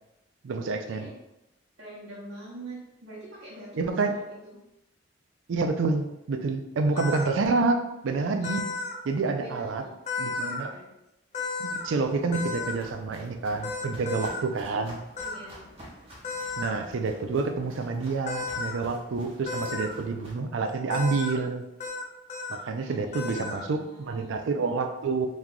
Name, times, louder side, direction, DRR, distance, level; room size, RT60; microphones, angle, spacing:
voice 1, 0.4-1.1 3.8-4.1 5.5-8.6 9.0-9.8 10.2-10.7 11.6-15.0 16.6-21.6 22.5-25.3, right 3 dB, 85° right, 6 dB, 0.4 m, -28 dB
voice 2, 1.8-4.6 9.4-9.9 10.6-10.9 15.2-15.6 22.8-24.3, right 2 dB, 70° right, -11 dB, 0.9 m, -44 dB
sound 1, 7.0-7.3 8.4-9.0 10.1-10.6 11.3-11.9 12.3-12.8 13.6-14.4 15.2-15.4 16.2-16.7 18.3-18.7 19.5-19.9 20.9-21.4 21.8-22.0 22.3-22.6 23.1-23.6, left 4 dB, 35° left, 0.4 m, -33 dB
Walk footsteps, 11.8-20.3, equal, 30° right, 0.9 m, -50 dB
3.0 x 2.2 x 3.8 m, 0.90 s
head